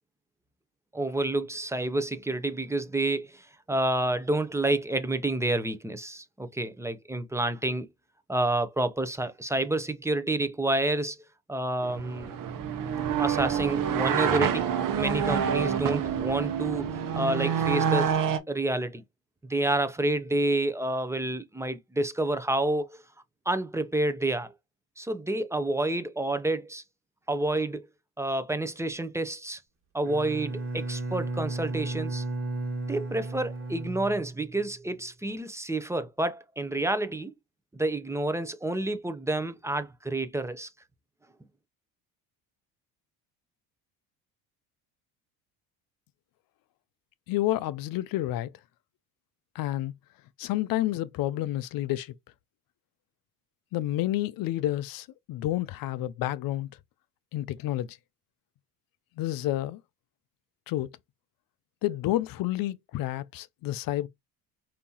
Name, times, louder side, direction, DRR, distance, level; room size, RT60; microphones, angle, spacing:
voice 1, 0.9-7.9 8.3-11.2 11.5-12.3 13.2-14.7 15.0-16.9 17.2-18.1 18.5-19.0 19.5-23.0 23.5-24.5 25.0-26.8 27.3-27.9 28.2-29.6 29.9-32.2 32.9-37.3 37.7-40.7, right 2 dB, 5° right, 0.7 m, -29 dB
sound 1, 11.8-18.4, right 8 dB, 50° right, 1.0 m, -27 dB
Bowed string instrument, 30.0-34.8, right 2 dB, 30° right, 1.7 m, -34 dB
voice 2, 47.3-48.5 49.5-49.9 50.4-52.1 53.7-56.7 57.3-58.0 59.2-59.8 60.7-60.9 61.8-64.1, left 15 dB, 55° left, 0.5 m, -29 dB
5.1 x 2.8 x 3.0 m
supercardioid pair, 80°, 43 cm